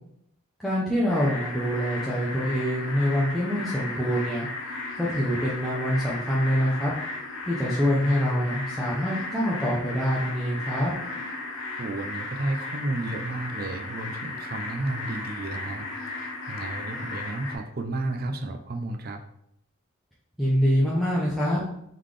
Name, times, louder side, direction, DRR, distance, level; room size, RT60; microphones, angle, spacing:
voice 1, 0.6-4.5 5.0-6.9 7.5-10.9 20.4-21.6, equal, ahead, -7 dB, 0.6 m, -25 dB
sound 1, 1.1-17.6, left 2 dB, 60° left, 0.8 m, -35 dB
voice 2, 11.8-19.2, right 2 dB, 45° right, 5 dB, 0.5 m, -32 dB
3.9 x 3.7 x 3.2 m, 0.75 s
head